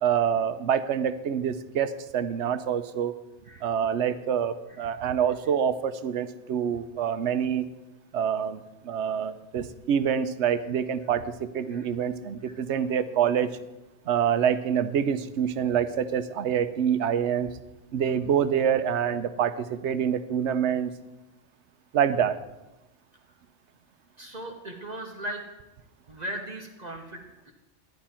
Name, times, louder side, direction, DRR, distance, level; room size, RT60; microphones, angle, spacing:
voice 1, 0.0-3.1 3.6-7.7 8.1-13.5 14.1-17.5 17.9-20.9 21.9-22.4, right 8 dB, 80° right, 13 dB, 1.0 m, -26 dB
voice 2, 24.2-25.4 26.1-27.5, right 1 dB, 40° right, 2 dB, 1.2 m, -38 dB
12.5 x 10.5 x 4.3 m, 1.0 s
omnidirectional pair, 1.2 m